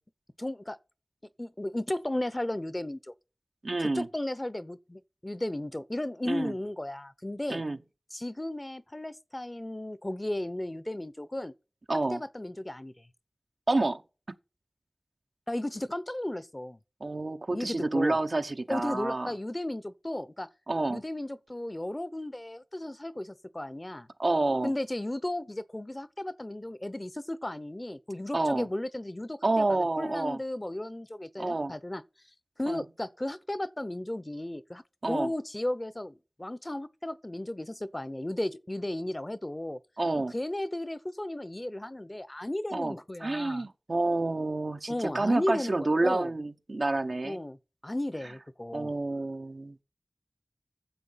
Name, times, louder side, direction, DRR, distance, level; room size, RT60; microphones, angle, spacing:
voice 1, 0.4-0.8 1.4-3.1 3.8-7.6 8.1-11.5 12.1-13.1 15.5-16.8 17.5-18.2 18.7-20.5 20.9-24.1 24.6-32.0 32.6-39.8 40.3-43.7 44.9-46.3 47.2-47.6 47.8-48.9, left 1 dB, 30° left, 0.7 m, -35 dB
voice 2, 3.6-4.1 6.3-6.5 7.5-7.8 11.9-12.2 13.7-14.0 17.0-19.3 20.7-21.0 24.2-24.7 28.3-28.7 29.4-30.4 31.4-31.7 32.7-32.8 35.0-35.3 40.0-40.3 42.7-42.9 43.2-47.4 48.7-49.7, right 2 dB, 70° right, 0.8 m, -28 dB
9.9 x 7.4 x 5.6 m
wide cardioid pair, 45°, 0 cm